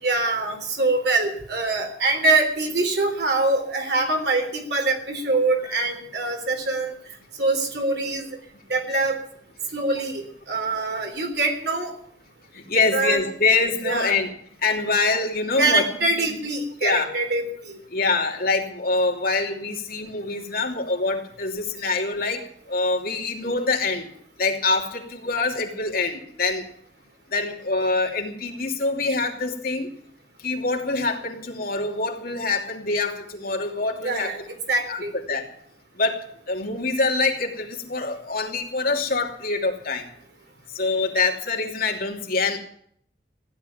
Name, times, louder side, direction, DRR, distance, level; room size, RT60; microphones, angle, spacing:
voice 1, 0.0-6.9 7.4-8.3 8.7-9.2 9.7-11.9 12.9-13.2 13.8-14.2 15.6-17.8 34.0-35.1, right 2 dB, 60° right, 4 dB, 3.7 m, -24 dB
voice 2, 12.5-14.3 14.6-15.8 16.8-17.1 17.9-22.4 22.7-24.1 24.4-26.6 27.3-29.9 30.4-34.3 34.9-35.0 35.3-35.5 36.0-40.0 40.7-42.6, left 3 dB, 55° left, 2 dB, 2.9 m, -25 dB
15.5 x 11.5 x 7.2 m, 0.64 s
head